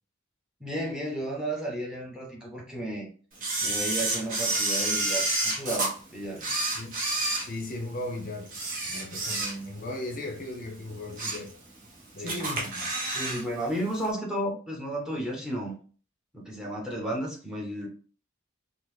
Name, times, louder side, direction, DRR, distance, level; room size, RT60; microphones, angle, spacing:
voice 1, 0.6-3.1 3.6-6.4 12.2-12.7 13.1-15.8 16.3-17.9, right 1 dB, 5° right, 0.7 m, -33 dB
Camera, 3.4-5.9 6.4-8.0 8.5-9.9 10.2-10.4 10.9-11.5 11.8-11.9 12.3-13.4 13.7-13.8, right 2 dB, 40° right, 0.8 m, -29 dB
voice 2, 7.4-8.6 8.8-11.6 12.1-12.9, left 1 dB, 45° left, 0.6 m, -37 dB
3.7 x 2.0 x 3.1 m
head